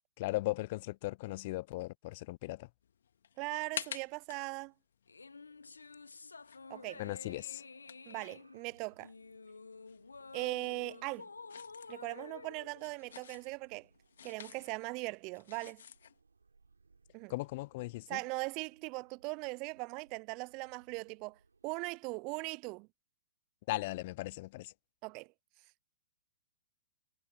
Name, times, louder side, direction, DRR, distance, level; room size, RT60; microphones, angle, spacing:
voice 1, 0.2-2.7 7.0-7.6 17.3-18.2 23.7-24.7, left 20 dB, 45° left, 0.4 m, -37 dB
sound 1, 2.8-9.1 9.4-16.2, left 8 dB, 70° left, 1.9 m, -50 dB
voice 2, 3.4-4.7 6.7-7.0 8.1-9.1 10.3-11.3 11.9-13.9 14.2-15.8 17.1-17.3 18.1-21.3 21.6-22.9 25.0-25.3, right 28 dB, 40° right, 0.5 m, -39 dB
sound 2, 5.1-13.7, left 4 dB, 90° left, 1.5 m, -51 dB
sound 3, 6.7-22.0, right 4 dB, 90° right, 6.1 m, -69 dB
hypercardioid pair, 120°, 0 cm